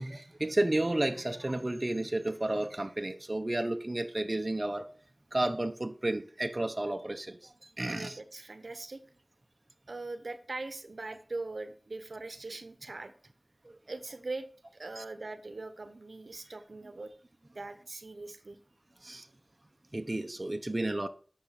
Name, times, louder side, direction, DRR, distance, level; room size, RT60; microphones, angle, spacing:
voice 1, 0.0-4.9 5.3-8.2 13.6-13.7 15.0-15.1 19.0-19.3 19.9-21.1, right 1 dB, 40° right, 1.0 m, -32 dB
voice 2, 7.9-9.0 9.9-13.1 13.9-14.5 14.7-17.1 17.5-18.6, right 3 dB, 80° right, 1.0 m, -41 dB
10.5 x 6.5 x 5.8 m
wide cardioid pair, 45°, 0 cm